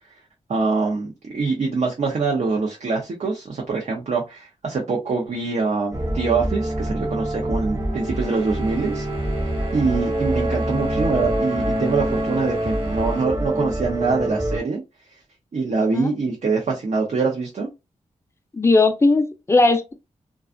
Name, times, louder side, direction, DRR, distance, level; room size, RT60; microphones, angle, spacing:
voice 1, 0.5-9.0 9.7-14.8 15.5-17.7, right 4 dB, 60° right, 0.6 m, -24 dB
sound 1, 5.9-14.6, right 1 dB, 25° right, 0.8 m, -25 dB
sound 2, 8.1-13.3, right 2 dB, 40° right, 1.2 m, -43 dB
voice 2, 18.5-19.9, left 3 dB, 20° left, 0.5 m, -18 dB
2.4 x 2.3 x 2.4 m
wide cardioid pair, 90°, 13 cm